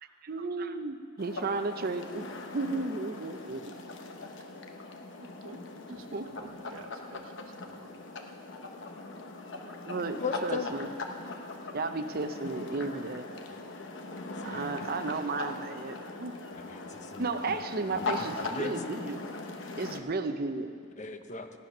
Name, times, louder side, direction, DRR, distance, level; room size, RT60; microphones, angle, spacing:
voice 1, 0.2-3.7 5.9-6.3 6.6-6.7 9.5-9.6 9.9-10.9 11.7-13.2 14.4-16.3 17.2-19.2 19.8-20.8, right 3 dB, 50° right, 9 dB, 0.7 m, -34 dB
sound 1, 1.2-20.0, left 3 dB, 65° left, 1.0 m, -40 dB
voice 2, 5.2-5.6 5.9-8.0 9.6-9.8 10.0-10.2, right 3 dB, 80° right, 5 dB, 1.1 m, -52 dB
voice 3, 10.2-10.7 13.5-13.6 14.4-14.7 16.7-17.3 17.9-18.1 18.4-18.7 21.0-21.5, left 4 dB, 35° left, 7 dB, 0.7 m, -36 dB
15.0 x 10.5 x 6.0 m, 2.3 s
head